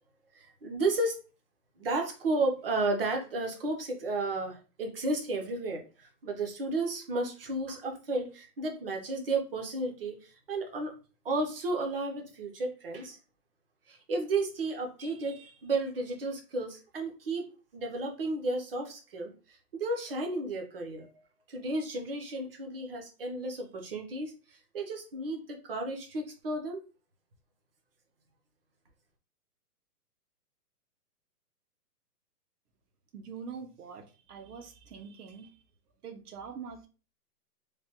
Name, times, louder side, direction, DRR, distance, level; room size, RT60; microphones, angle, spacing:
voice 1, 0.3-1.2 1.8-10.9 11.2-13.2 13.9-17.4 17.7-19.3 19.7-21.1 21.5-26.8, right 2 dB, 40° right, 3 dB, 0.5 m, -33 dB
voice 2, 33.1-35.6 36.0-36.9, right 6 dB, 70° right, 7 dB, 0.8 m, -44 dB
3.3 x 2.1 x 2.7 m, 0.34 s
hypercardioid pair, 165°, 47 cm